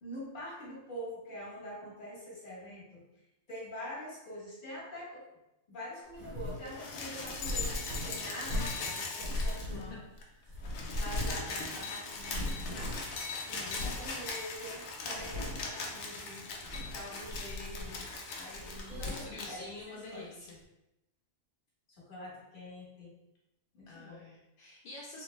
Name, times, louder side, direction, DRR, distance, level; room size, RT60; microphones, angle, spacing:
voice 1, 0.0-3.0 3.5-5.2 5.7-10.0 10.9-13.0 13.5-16.5 16.9-20.3 21.9-23.1 23.7-24.2, equal, 40° left, -7 dB, 1.2 m, -45 dB
sound 1, 6.1-6.7 7.2-8.9 9.2-10.2 10.5-11.5 11.8-11.9 12.1-13.2 13.7-14.1 14.6-14.7 15.1-15.7 16.5-17.0 17.3-18.2 18.5-19.3, left 1 dB, 80° right, 1.0 m, -38 dB
sound 2, 6.6-9.9 10.2-10.3 10.5-19.5 20.5-20.6, left 3 dB, 90° left, 1.0 m, -40 dB
voice 2, 9.3-10.0 10.3-10.6 18.6-20.6 23.9-25.2, left 2 dB, 60° left, -4 dB, 0.6 m, -48 dB
3.3 x 2.1 x 3.0 m, 0.91 s
omnidirectional pair, 1.4 m